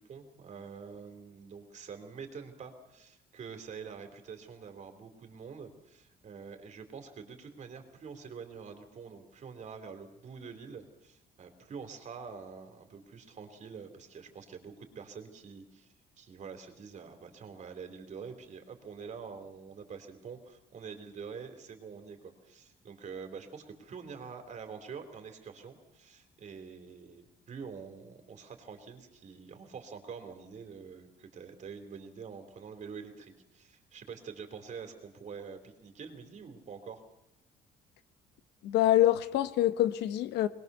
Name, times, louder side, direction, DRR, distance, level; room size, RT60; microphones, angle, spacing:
voice 1, 0.0-37.0, right 6 dB, 45° right, 3.4 m, -46 dB
voice 2, 38.6-40.5, left 13 dB, 85° left, 1.1 m, -25 dB
22.0 x 20.0 x 6.9 m
cardioid pair, 110°, 17 cm